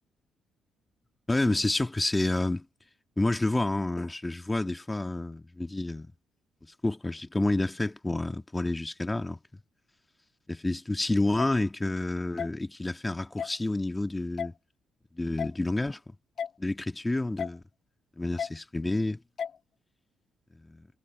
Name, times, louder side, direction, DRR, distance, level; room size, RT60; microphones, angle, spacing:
voice 1, 1.3-2.6 3.2-6.1 6.6-9.4 10.5-14.5 15.1-16.0 16.6-17.6 18.2-19.2 20.5-20.9, left 2 dB, 15° left, 1.6 m, -29 dB
sound 1, 11.4-11.5 12.4-12.5 13.4-13.5 14.4-14.5 15.4-15.6 16.4-16.5 17.4-17.6 18.4-18.5 19.4-19.6, left 7 dB, 55° left, 1.5 m, -33 dB
cardioid pair, 90°, 0 cm